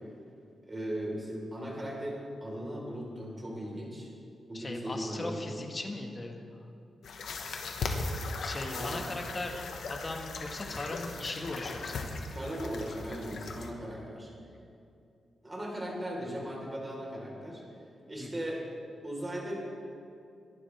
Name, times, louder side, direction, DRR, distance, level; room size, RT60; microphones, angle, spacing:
voice 1, 0.6-4.1 4.4-5.6 8.7-9.0 12.3-14.3 15.4-17.6 18.1-18.6 19.0-19.6, equal, 20° right, -2 dB, 4.1 m, -38 dB
voice 2, 4.5-6.4 8.4-12.2 14.6-14.7 18.2-18.5, left 2 dB, 30° left, 2 dB, 1.6 m, -39 dB
sound 1, 7.0-13.7, left 3 dB, 85° left, 1.4 m, -38 dB
22.5 x 11.5 x 3.5 m, 2.5 s
wide cardioid pair, 110°, 0 cm